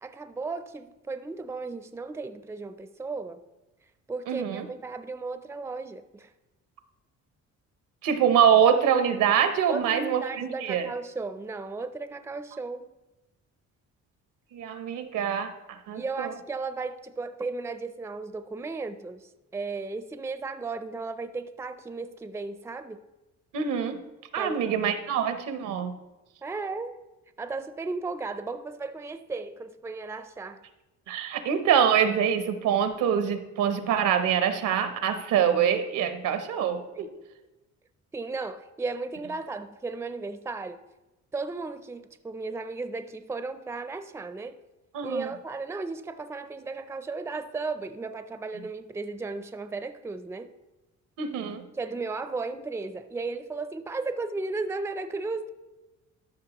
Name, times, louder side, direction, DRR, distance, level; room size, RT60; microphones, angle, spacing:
voice 1, 0.0-3.4 4.1-6.3 9.7-12.9 15.9-23.0 24.4-24.8 26.4-27.0 27.4-30.6 36.9-37.1 38.1-40.8 41.3-44.6 45.0-50.5 51.8-55.5, right 3 dB, 10° right, 11 dB, 0.4 m, -35 dB
voice 2, 4.3-4.7 8.0-10.9 14.5-16.3 23.5-24.0 24.3-26.0 31.1-37.1 44.9-45.3 51.2-51.6, right 8 dB, 90° right, 9 dB, 0.9 m, -25 dB
13.0 x 5.6 x 2.9 m, 1.0 s
cardioid pair, 90°, 30 cm